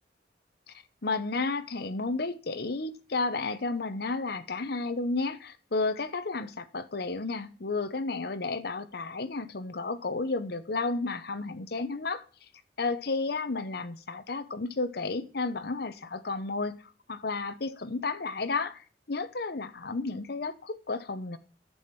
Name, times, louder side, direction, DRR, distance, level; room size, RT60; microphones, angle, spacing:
voice 1, 1.0-12.2 12.8-21.4, left 3 dB, 60° left, 0.9 m, -32 dB
11.0 x 7.2 x 5.9 m
head